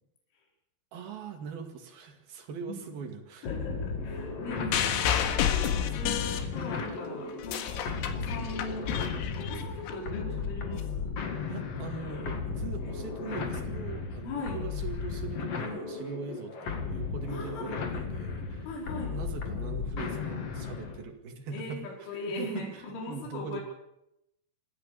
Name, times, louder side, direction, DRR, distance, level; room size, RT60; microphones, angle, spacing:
voice 1, 0.9-3.5 11.5-18.7 19.1-21.8 22.4-23.6, right 5 dB, 55° right, 4 dB, 3.5 m, -41 dB
voice 2, 3.4-7.8 8.1-8.9 9.3-11.2 14.2-14.6 17.3-17.8 18.7-19.2 21.5-23.6, left 2 dB, 65° left, -2 dB, 7.4 m, -39 dB
sound 1, 3.4-21.1, left 5 dB, 50° left, 2.0 m, -35 dB
sound 2, 4.7-6.9 7.3-9.9 10.8-10.9, left 10 dB, 85° left, 4.3 m, -30 dB
27.5 x 15.0 x 6.9 m, 0.85 s
omnidirectional pair, 5.9 m